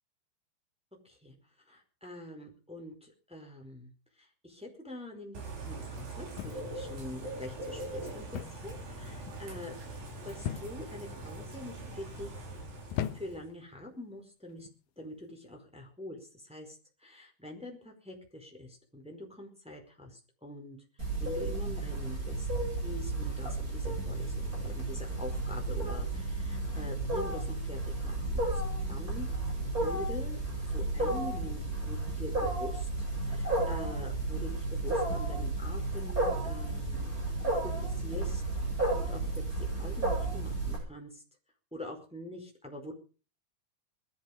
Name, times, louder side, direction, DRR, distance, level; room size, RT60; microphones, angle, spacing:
voice 1, 1.6-3.9 4.2-9.7 10.2-12.3 13.1-14.7 15.0-20.8 21.2-28.6 28.9-29.3 29.7-30.4 30.7-37.2 37.6-38.4 39.0-39.4 39.8-41.2 41.7-42.9, left 1 dB, ahead, 1 dB, 4.3 m, -45 dB
Bird / Rain, 5.3-13.5, right 2 dB, 65° right, 6.4 m, -42 dB
sound 1, 6.4-6.9 8.3-8.7 9.0-9.4 10.4-11.0 11.7-12.1 12.9-13.6 14.5-14.8, left 10 dB, 75° left, 2.5 m, -38 dB
Wild animals, 21.0-40.8, right 2 dB, 20° right, 8.1 m, -33 dB
21.0 x 12.5 x 5.3 m, 0.38 s
omnidirectional pair, 4.3 m